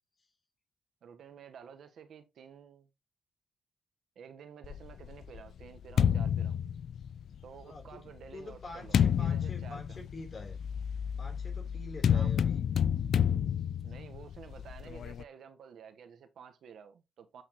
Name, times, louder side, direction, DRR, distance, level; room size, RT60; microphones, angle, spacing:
voice 1, 1.0-2.9 4.1-6.6 7.4-10.0 12.1-12.3 13.8-17.4, right 7 dB, 75° right, 1.3 m, -51 dB
sound 1, 4.6-7.4 8.2-15.2, left 8 dB, 75° left, 0.4 m, -30 dB
voice 2, 7.6-8.0 8.3-10.6 11.2-12.6, left 2 dB, 50° left, 3.8 m, -46 dB
7.9 x 6.4 x 3.1 m
cardioid pair, 60°, 0 cm